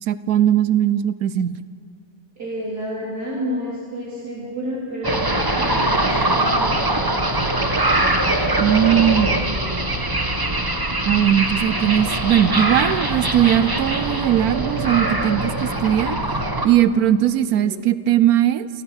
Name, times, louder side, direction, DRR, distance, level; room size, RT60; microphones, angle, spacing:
voice 1, 0.0-1.6 8.6-9.3 11.1-16.2 16.6-18.7, right 11 dB, 75° right, 15 dB, 0.8 m, -19 dB
voice 2, 2.4-7.5 7.8-8.1 8.8-9.8 17.4-17.8, equal, 45° right, -7 dB, 4.2 m, -31 dB
sound 1, 5.0-16.7, right 1 dB, 15° right, 0.9 m, -22 dB
28.5 x 16.0 x 6.5 m, 2.1 s
omnidirectional pair, 2.3 m